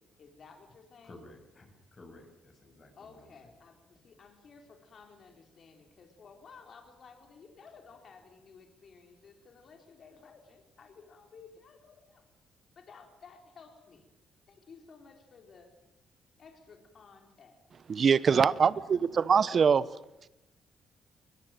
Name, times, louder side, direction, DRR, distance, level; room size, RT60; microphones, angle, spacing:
voice 1, 0.0-1.2 3.0-12.3 12.8-14.1 14.5-15.7 16.4-17.6 19.5-19.7, left 5 dB, 50° left, 4 dB, 4.3 m, -55 dB
voice 2, 1.0-3.3 18.5-19.2, left 2 dB, 35° left, 5 dB, 7.8 m, -54 dB
voice 3, 17.9-19.9, right 6 dB, 45° right, 17 dB, 1.1 m, -23 dB
21.5 x 21.0 x 9.2 m, 0.88 s
cardioid pair, 90°, 0 cm